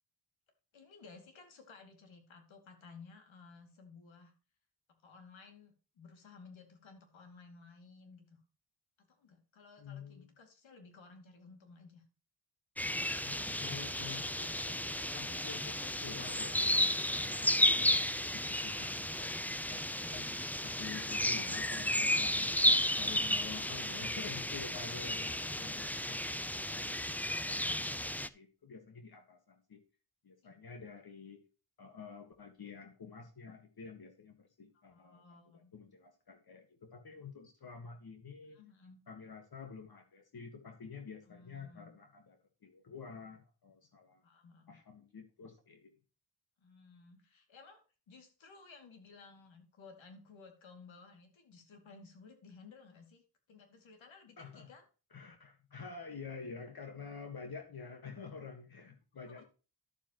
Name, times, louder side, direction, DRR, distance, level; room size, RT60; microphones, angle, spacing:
voice 1, 0.7-4.3 5.0-8.4 9.0-12.0 20.1-20.7 30.4-30.6 34.9-35.7 38.5-39.0 41.2-41.9 44.2-44.8 46.6-54.8 59.2-59.4, left 4 dB, 85° left, 6 dB, 2.6 m, -57 dB
voice 2, 9.8-10.3 13.2-20.3 20.6-22.6 22.9-29.8 30.2-31.4 31.8-35.2 35.5-38.6 39.1-44.2 44.7-45.9 54.4-54.7 55.1-59.4, left 5 dB, 55° left, 5 dB, 1.7 m, -49 dB
sound 1, 12.8-28.3, left 1 dB, 5° left, 0.5 m, -33 dB
11.5 x 7.3 x 3.0 m, 0.34 s
cardioid pair, 65°, 45 cm